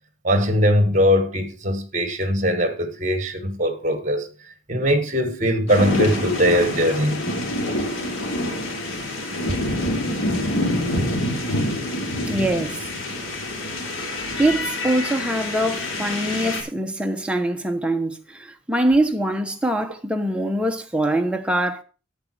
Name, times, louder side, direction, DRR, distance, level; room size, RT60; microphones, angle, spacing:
voice 1, 0.2-4.3 4.7-7.2, equal, 40° right, 1.7 m, -21 dB
sound 1, 5.7-16.6, left 1 dB, 90° left, 3.4 m, -26 dB
voice 2, 12.3-12.8 14.4-21.8, right 1 dB, 5° right, 1.1 m, -23 dB
10.5 x 8.7 x 4.6 m
head